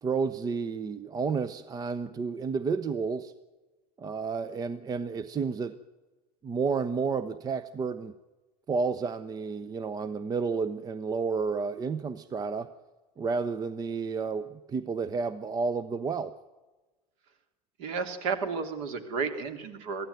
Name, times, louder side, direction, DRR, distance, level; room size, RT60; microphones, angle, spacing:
voice 1, 0.0-3.3 4.0-5.8 6.4-8.1 8.7-12.7 13.2-16.3, right 5 dB, 20° right, 15 dB, 0.7 m, -31 dB
voice 2, 17.8-20.1, right 5 dB, 50° right, 8 dB, 2.9 m, -32 dB
22.5 x 15.0 x 9.2 m, 1.2 s
figure-of-eight pair, 85°, 21 cm